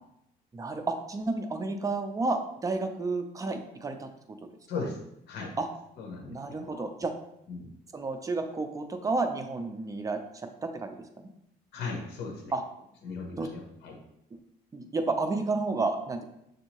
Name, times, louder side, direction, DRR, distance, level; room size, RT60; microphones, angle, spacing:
voice 1, 0.5-4.4 4.8-4.9 5.6-5.7 6.3-7.1 7.9-10.2 10.6-11.3 12.5-12.6 13.4-13.5 14.7-16.2, right 3 dB, 20° right, 6 dB, 0.5 m, -31 dB
voice 2, 6.0-6.8 7.5-7.7 11.7-12.5 13.0-14.0, left 4 dB, 75° left, 1 dB, 0.9 m, -37 dB
6.1 x 2.7 x 3.0 m, 0.80 s
cardioid pair, 110°, 17 cm